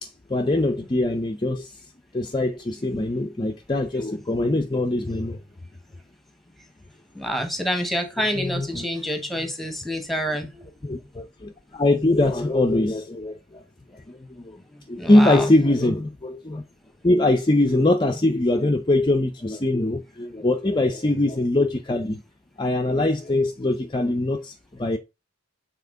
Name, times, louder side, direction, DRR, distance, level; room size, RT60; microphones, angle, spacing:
voice 1, 0.0-1.8 2.1-5.4 8.4-8.8 10.8-13.6 13.9-14.6 14.9-16.6 17.0-22.2 22.6-25.0, left 2 dB, 25° left, 0.6 m, -22 dB
voice 2, 7.1-10.7 14.7-15.5, equal, ahead, 1.4 m, -27 dB
7.2 x 4.4 x 3.9 m
head